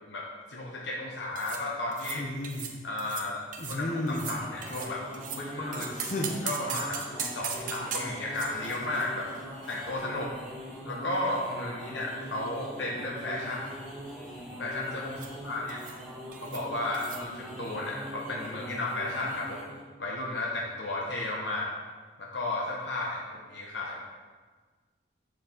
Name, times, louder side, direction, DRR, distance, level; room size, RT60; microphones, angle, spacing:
voice 1, 0.0-2.3 2.8-3.4 3.7-5.1 5.3-5.9 6.4-9.3 9.7-10.3 10.8-13.7 14.6-15.8 16.4-19.7 20.0-21.7 22.2-24.0, left 2 dB, 75° left, -3 dB, 1.1 m, -34 dB
sound 1, 1.4-1.6 1.9-2.2 2.4-2.7 3.0-3.3 3.5-5.4 5.7-10.4 10.7-10.8 11.5-12.4 12.7-13.0 13.3-13.7 15.2-15.3 15.7-16.0 16.3-16.6 16.9-17.2, right 7 dB, 45° right, 0.8 m, -39 dB
sound 2, 2.1-2.7 3.6-4.5 5.9-6.4 8.4-8.8, left 1 dB, 40° left, 0.8 m, -34 dB
sound 3, 4.0-19.8, equal, 10° left, 2.7 m, -42 dB
7.4 x 6.2 x 4.5 m, 1.4 s
head